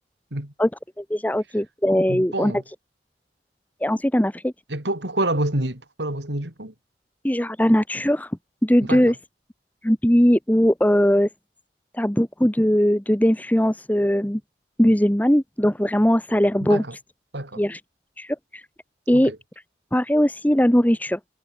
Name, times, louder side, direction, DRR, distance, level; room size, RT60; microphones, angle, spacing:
voice 1, 1.0-2.5 3.8-4.5 7.2-8.3 8.6-9.2 9.8-11.3 11.9-14.4 14.8-17.0 17.6-17.8 18.2-18.6 19.1-19.3 19.9-21.2, equal, 10° left, 1.1 m, -20 dB
voice 2, 2.1-2.6 4.7-6.7 8.8-9.1 16.7-16.9 17.3-17.6 19.1-19.4, right 1 dB, 80° right, 4.3 m, -27 dB
head